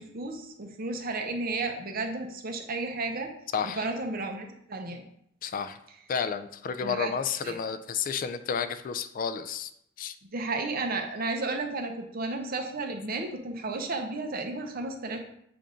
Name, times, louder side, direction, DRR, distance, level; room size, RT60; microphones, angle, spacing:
voice 1, 0.0-3.3 3.6-5.0 6.8-7.1 7.4-7.6 10.2-15.2, right 3 dB, 50° right, 4 dB, 0.8 m, -33 dB
voice 2, 3.5-3.9 5.4-5.8 6.1-9.7 10.0-10.1, left 6 dB, 45° left, 11 dB, 0.3 m, -31 dB
7.6 x 2.6 x 5.0 m, 0.73 s
head